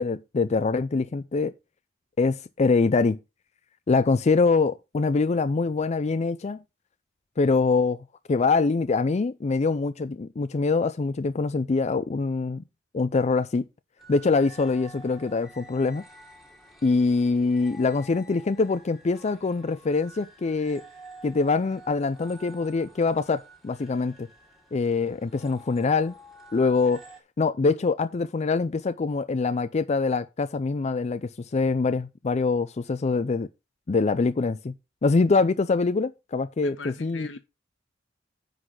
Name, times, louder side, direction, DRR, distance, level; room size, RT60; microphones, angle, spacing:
voice 1, 0.0-1.5 2.2-3.2 3.9-6.6 7.4-12.6 12.9-13.6 14.1-16.0 16.8-20.8 21.2-24.3 24.7-26.1 26.5-27.0 27.4-33.5 33.9-34.7 35.0-37.3, left 4 dB, 35° left, 0.4 m, -24 dB
sound 1, 14.0-27.2, right 1 dB, ahead, 1.9 m, -50 dB
voice 2, 36.6-37.4, left 3 dB, 80° left, 1.5 m, -41 dB
9.8 x 4.1 x 5.8 m
head